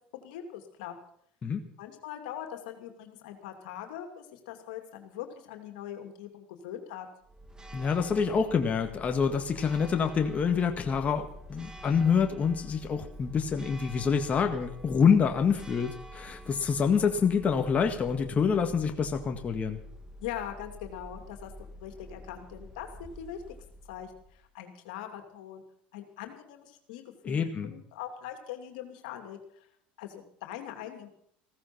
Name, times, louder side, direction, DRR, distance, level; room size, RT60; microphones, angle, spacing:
voice 1, 0.2-0.9 1.8-7.1 20.2-23.4 23.9-25.6 25.9-29.7 30.0-31.1, left 10 dB, 80° left, 5 dB, 2.7 m, -42 dB
Church bell, 7.2-24.5, equal, 15° right, 2.0 m, -47 dB
voice 2, 7.7-19.8 27.2-27.7, left 6 dB, 30° left, 4 dB, 1.8 m, -27 dB
16.0 x 14.5 x 6.1 m, 0.66 s
hypercardioid pair, 90°, 5 cm